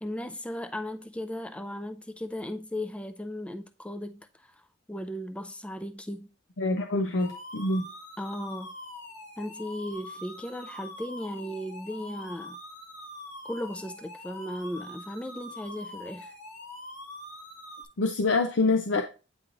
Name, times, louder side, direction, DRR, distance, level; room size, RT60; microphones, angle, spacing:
voice 1, 0.0-4.6 4.9-6.3 8.2-8.8 9.4-12.6 13.5-16.3, left 1 dB, 5° left, 0.3 m, -36 dB
voice 2, 6.6-7.9 18.0-19.0, left 3 dB, 90° left, 0.7 m, -26 dB
sound 1, 7.2-17.8, left 1 dB, 65° left, 2.1 m, -44 dB
8.8 x 3.1 x 3.8 m
head